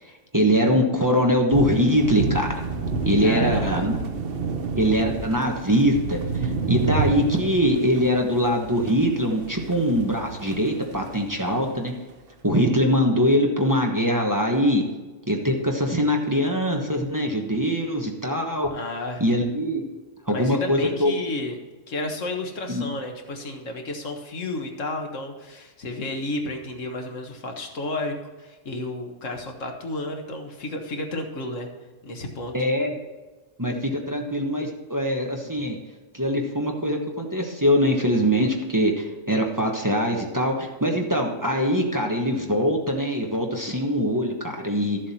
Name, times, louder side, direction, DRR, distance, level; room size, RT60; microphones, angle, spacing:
voice 1, 0.3-2.5 3.0-3.9 4.8-11.9 12.4-14.8 15.3-18.7 19.2-19.8 20.3-21.1 22.7-22.8 32.5-32.9 33.6-35.8 36.1-45.0, equal, 15° right, 1 dB, 1.1 m, -22 dB
sound 1, 1.5-11.6, right 4 dB, 55° right, 1.0 m, -29 dB
voice 2, 3.2-3.9 18.7-19.2 20.3-21.6 21.9-31.7 32.0-32.6, left 2 dB, 85° left, 3 dB, 1.7 m, -32 dB
13.0 x 7.5 x 4.3 m, 1.2 s
omnidirectional pair, 1.3 m